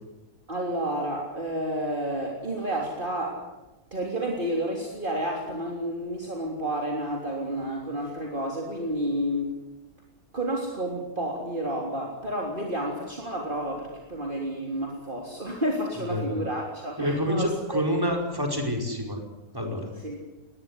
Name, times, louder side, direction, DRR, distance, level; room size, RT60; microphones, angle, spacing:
voice 1, 0.5-3.5 3.9-9.6 10.3-17.9 20.0-20.2, right 1 dB, 30° right, 0 dB, 3.7 m, -30 dB
voice 2, 17.0-19.2 19.5-20.0, equal, 15° right, 2 dB, 5.1 m, -27 dB
20.5 x 20.0 x 9.8 m, 1.0 s
omnidirectional pair, 1.7 m